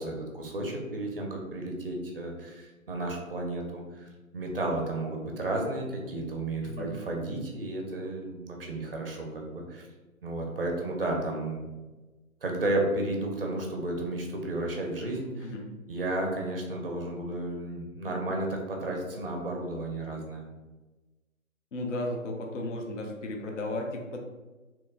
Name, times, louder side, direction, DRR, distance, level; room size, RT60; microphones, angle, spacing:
voice 1, 0.0-9.9 10.2-11.7 12.4-15.5 15.9-20.5, right 2 dB, 45° right, 1 dB, 0.5 m, -33 dB
voice 2, 6.6-6.9 15.4-15.7 18.1-18.2 21.7-24.2, left 1 dB, 60° left, 2 dB, 0.5 m, -35 dB
2.9 x 2.2 x 2.4 m, 1.2 s
figure-of-eight pair, 155°, 42 cm